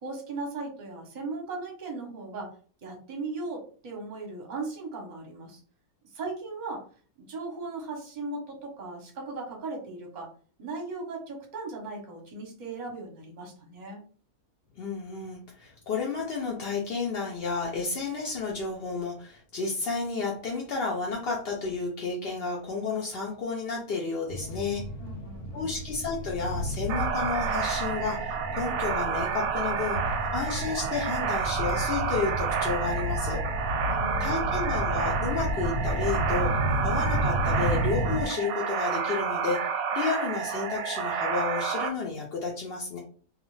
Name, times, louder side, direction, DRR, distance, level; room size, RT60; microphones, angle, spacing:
voice 1, 0.0-2.5 2.8-5.6 6.1-6.8 7.2-10.3 10.6-14.0 25.0-25.7 33.9-34.6, right 3 dB, 40° right, 1 dB, 0.7 m, -37 dB
voice 2, 14.8-24.8 25.5-30.0 30.3-33.4 34.2-36.5 36.8-43.0, left 4 dB, 70° left, -2 dB, 0.5 m, -31 dB
sound 1, 24.3-38.3, equal, 90° left, 1.2 m, -32 dB
sound 2, 26.9-41.9, right 7 dB, 70° right, 0.9 m, -30 dB
2.4 x 2.4 x 3.0 m, 0.42 s
omnidirectional pair, 1.7 m